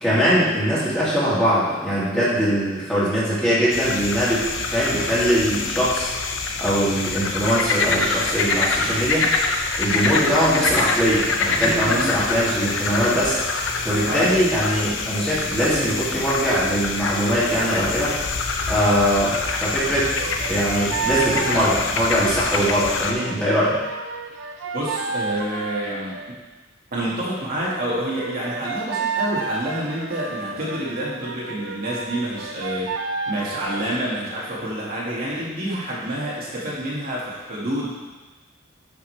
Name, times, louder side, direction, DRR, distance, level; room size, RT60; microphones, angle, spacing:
voice 1, 0.0-6.1 6.6-9.3 9.8-13.4 13.8-18.1 18.7-20.1 20.4-23.8, equal, 5° left, -11 dB, 2.6 m, -21 dB
sound 1, 3.7-23.1, left 3 dB, 70° left, 0.7 m, -25 dB
voice 2, 11.6-12.3 14.1-14.4 24.7-26.4 26.9-32.9 33.3-38.0, right 1 dB, 50° right, -7 dB, 2.0 m, -28 dB
sound 2, 20.1-26.3 28.1-34.3, right 4 dB, 70° right, 0.6 m, -31 dB
11.0 x 5.6 x 3.3 m, 1.2 s
head